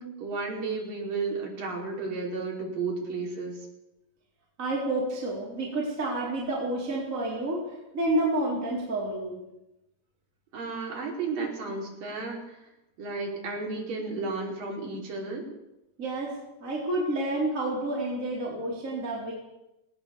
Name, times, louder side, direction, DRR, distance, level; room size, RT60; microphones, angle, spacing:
voice 1, 0.0-3.7 10.5-12.6 13.0-15.5, right 4 dB, 55° right, -1 dB, 6.4 m, -33 dB
voice 2, 4.6-7.6 7.9-9.3 16.0-19.3, right 1 dB, 20° right, -4 dB, 4.5 m, -29 dB
19.5 x 18.5 x 7.4 m, 0.92 s
omnidirectional pair, 4.8 m